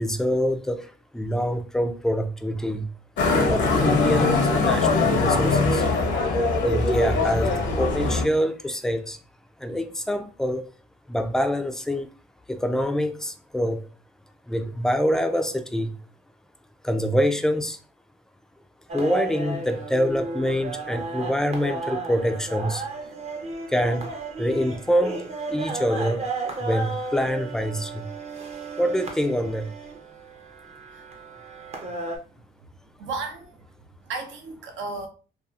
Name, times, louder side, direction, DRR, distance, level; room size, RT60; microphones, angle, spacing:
voice 1, 0.0-2.8 3.2-5.8 6.6-9.2 9.6-10.7 11.1-12.1 12.5-13.9 14.5-16.0 16.8-17.8 18.9-22.8 23.7-24.1 24.4-26.3 26.6-28.1 28.8-29.7, equal, 5° left, 0.3 m, -25 dB
Motorcycle, 3.2-8.2, left 3 dB, 65° left, 0.7 m, -22 dB
sound 1, 18.9-32.2, right 3 dB, 35° right, 0.6 m, -34 dB
voice 2, 33.0-33.6 34.1-35.1, right 3 dB, 70° right, 0.7 m, -34 dB
2.7 x 2.3 x 2.3 m
cardioid pair, 90°, 20 cm